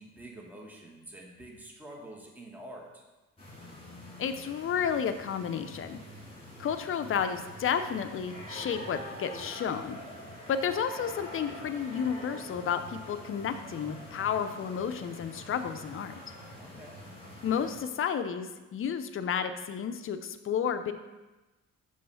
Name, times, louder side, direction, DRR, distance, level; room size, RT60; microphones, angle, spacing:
voice 1, 0.0-3.0 16.6-17.0, right 1 dB, 5° right, -1 dB, 1.1 m, -47 dB
sound 1, 3.4-17.8, equal, 20° left, 2.1 m, -46 dB
voice 2, 4.2-6.0 6.6-10.0 10.5-16.1 17.4-20.9, left 7 dB, 45° left, 9 dB, 0.5 m, -31 dB
6.7 x 3.1 x 5.5 m, 1.1 s
cardioid pair, 90°, 30 cm